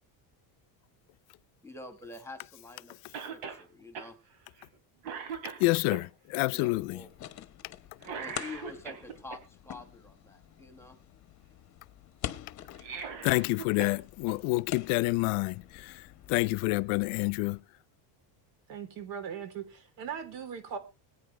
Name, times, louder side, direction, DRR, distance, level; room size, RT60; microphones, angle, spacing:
voice 1, 1.6-4.2 6.5-7.1 8.1-11.0, left 2 dB, 5° left, 1.4 m, -47 dB
Cough, 3.1-3.6 4.0-4.1 4.6-4.8 5.0-6.0 8.0-9.4 12.7-14.0 14.3-14.4 15.5-15.6, right 6 dB, 80° right, 3.4 m, -40 dB
voice 2, 5.6-7.1 13.2-17.6, left 23 dB, 75° left, 0.7 m, -28 dB
sound 1, 6.7-17.6, left 13 dB, 35° left, 0.9 m, -46 dB
voice 3, 18.7-20.8, right 7 dB, 60° right, 3.6 m, -39 dB
21.0 x 9.5 x 3.3 m
cardioid pair, 175°, 48 cm